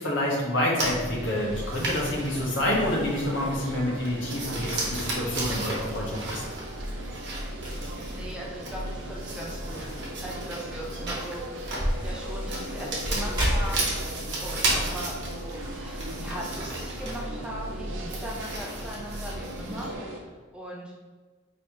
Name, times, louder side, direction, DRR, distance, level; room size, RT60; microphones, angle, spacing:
voice 1, 0.0-6.4, left 1 dB, 70° left, -4 dB, 1.2 m, -28 dB
Paper handling, 0.8-20.0, right 1 dB, 60° right, 1.0 m, -34 dB
sound 1, 1.1-18.8, equal, 20° right, 1.0 m, -38 dB
sound 2, 1.1-20.2, right 1 dB, 75° right, 0.6 m, -40 dB
voice 2, 8.1-9.9 10.2-11.7 12.0-13.9 14.4-19.9 20.2-20.9, equal, 5° right, -3 dB, 0.4 m, -39 dB
3.1 x 2.8 x 4.6 m, 1.3 s
head